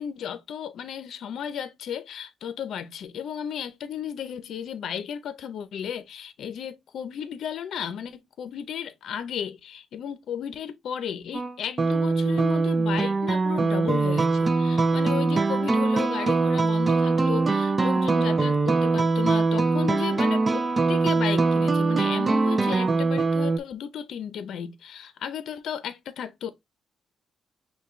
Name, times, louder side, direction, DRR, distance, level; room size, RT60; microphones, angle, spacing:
voice 1, 0.0-26.5, left 8 dB, 75° left, 0.5 m, -34 dB
sound 1, 11.3-23.6, right 3 dB, 30° right, 0.3 m, -22 dB
5.8 x 2.3 x 3.1 m
cardioid pair, 90°, 0 cm